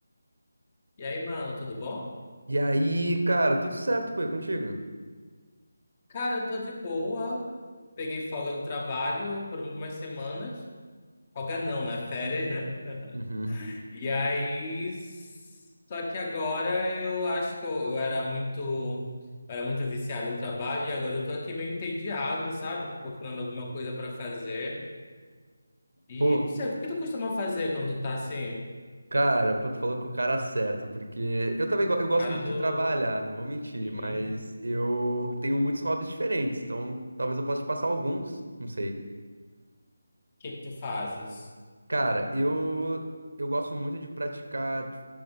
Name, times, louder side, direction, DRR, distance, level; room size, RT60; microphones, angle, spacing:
voice 1, 1.0-2.1 6.1-7.5 8.0-10.6 11.3-13.2 13.5-15.3 15.9-19.1 19.5-24.8 26.1-28.6 32.2-32.8 33.8-34.2 40.4-41.5, left 2 dB, 30° left, 0 dB, 1.1 m, -32 dB
voice 2, 2.5-4.8 13.1-13.6 26.2-26.5 29.1-39.0 41.9-43.0 43.4-44.9, right 1 dB, 65° right, 5 dB, 1.0 m, -28 dB
10.5 x 5.8 x 3.6 m, 1.5 s
figure-of-eight pair, 160°, 0 cm